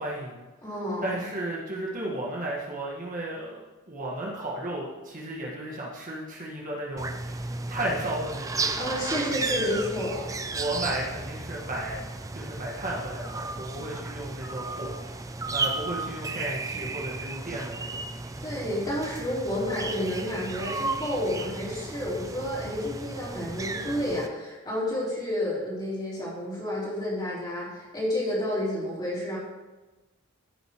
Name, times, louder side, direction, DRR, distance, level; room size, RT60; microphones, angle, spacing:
voice 1, 0.0-0.5 1.0-9.7 10.4-12.0 12.3-15.1 15.5-18.0 18.3-18.4, right 1 dB, 40° right, -4 dB, 1.6 m, -34 dB
voice 2, 0.6-1.3 8.7-10.3 18.4-29.4, left 1 dB, 20° left, -7 dB, 3.4 m, -30 dB
sound 1, 7.0-24.3, right 3 dB, 15° right, 0.4 m, -34 dB
14.5 x 6.6 x 3.1 m, 1.2 s
head